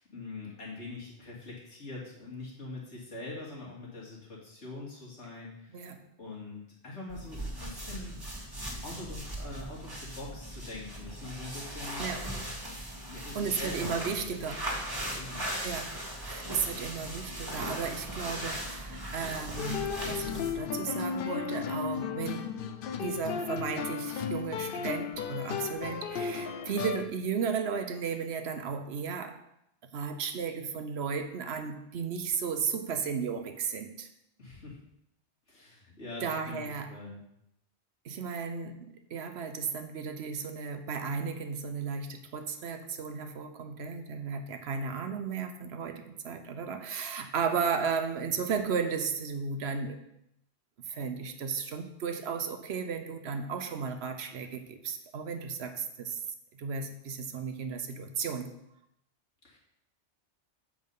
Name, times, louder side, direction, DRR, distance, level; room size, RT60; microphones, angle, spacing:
voice 1, 0.0-5.9 6.2-12.0 12.8-14.4 14.7-14.8 15.1-15.6 34.4-34.8 35.5-37.2 59.4-59.6, left 3 dB, 85° left, -5 dB, 2.6 m, -44 dB
voice 2, 5.7-6.1 12.0-12.3 13.3-14.7 15.6-22.5 23.0-29.4 29.9-34.1 36.2-36.9 38.0-50.0 50.9-56.2 56.5-58.5, right 6 dB, 65° right, 7 dB, 1.0 m, -34 dB
sound 1, 7.1-20.7, right 1 dB, 20° right, 1.6 m, -38 dB
sound 2, 19.6-27.1, left 7 dB, 60° left, 0.7 m, -34 dB
7.4 x 4.8 x 5.5 m, 0.80 s
omnidirectional pair, 1.2 m